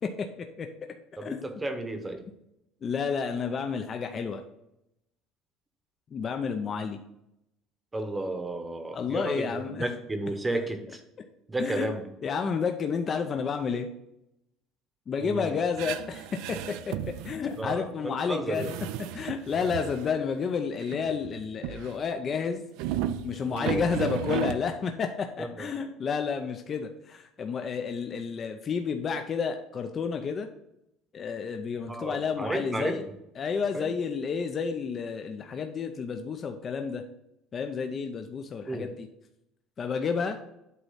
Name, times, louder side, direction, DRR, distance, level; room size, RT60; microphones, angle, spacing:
voice 1, 1.2-2.2 7.9-11.0 11.5-12.0 15.2-15.5 17.6-18.7 23.5-23.8 25.4-25.7 31.9-33.0 33.7-33.9 38.7-38.9, right 2 dB, 15° right, 7 dB, 0.9 m, -33 dB
voice 2, 2.8-4.4 6.1-7.0 8.9-9.8 11.6-11.9 12.2-13.9 15.1-18.7 19.1-22.6 23.2-30.5 31.1-33.0 33.4-37.0 37.5-39.1 39.8-40.4, left 6 dB, 35° left, 5 dB, 0.5 m, -30 dB
sound 1, 15.7-17.8 18.1-18.2 18.4-20.1 20.8-22.0 22.8-24.6, right 11 dB, 80° right, 0.4 m, -34 dB
8.2 x 3.1 x 5.6 m, 0.84 s
cardioid pair, 120°, 0 cm